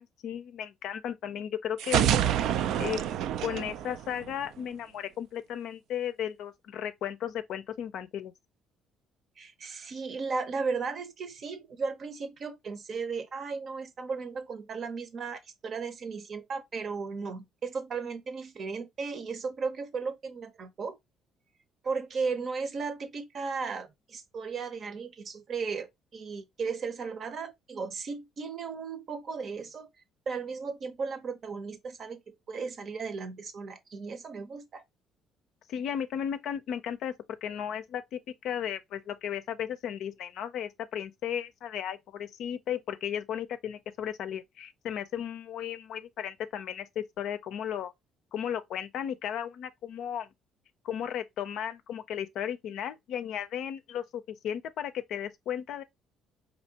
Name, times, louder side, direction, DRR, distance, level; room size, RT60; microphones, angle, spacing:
voice 1, 0.0-2.1 2.8-3.0 3.4-8.3 35.7-37.1 37.4-47.9 48.3-50.3 50.8-55.8, left 9 dB, 70° left, 0.5 m, -35 dB
sound 1, 1.8-4.6, right 10 dB, 70° right, 0.3 m, -27 dB
voice 2, 9.4-21.0 21.8-29.9 30.3-34.8, right 5 dB, 50° right, 0.7 m, -35 dB
4.3 x 2.7 x 2.7 m
supercardioid pair, 70°, 0 cm